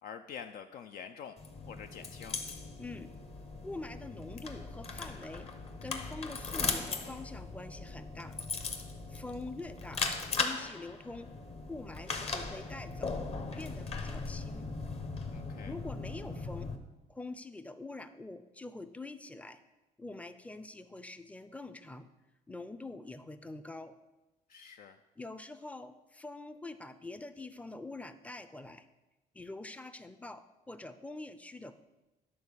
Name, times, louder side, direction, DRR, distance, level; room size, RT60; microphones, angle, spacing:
voice 1, 0.0-1.4 1.7-2.4 15.3-15.7 24.5-25.0, left 7 dB, 60° left, 7 dB, 0.5 m, -46 dB
sound 1, 1.4-16.8, left 4 dB, 35° left, 1.0 m, -38 dB
voice 2, 2.8-3.1 3.6-5.5 5.8-8.4 9.1-10.1 10.4-11.3 11.7-13.2 13.6-14.8 15.6-16.7 17.1-19.6 20.0-22.1 22.5-24.0 25.2-28.9 29.3-31.8, left 2 dB, 10° left, 11 dB, 0.5 m, -45 dB
10.5 x 3.9 x 6.9 m, 1.1 s
cardioid pair, 110°, 17 cm